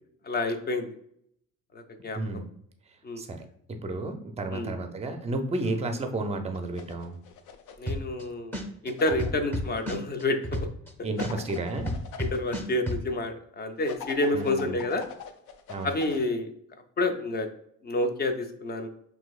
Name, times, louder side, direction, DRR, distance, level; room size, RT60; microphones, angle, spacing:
voice 1, 0.2-0.9 1.7-2.2 3.0-3.2 4.5-4.8 5.7-5.8 7.8-8.6 8.8-10.7 12.2-15.0 15.8-16.5 17.0-17.5 17.8-18.9, left 2 dB, 30° left, 6 dB, 0.6 m, -29 dB
voice 2, 2.1-2.5 3.2-3.4 3.7-7.2 11.0-11.9 14.3-14.8 15.7-15.9, right 2 dB, 20° right, 6 dB, 0.5 m, -32 dB
sound 1, 6.5-7.9 9.0-9.9 11.2-12.4 13.8-16.3, left 7 dB, 70° left, 0.6 m, -44 dB
sound 2, 7.9-8.2 8.5-10.9 11.2-13.0, equal, 5° left, 0.8 m, -31 dB
5.9 x 2.7 x 2.4 m, 0.69 s
cardioid pair, 135°, 31 cm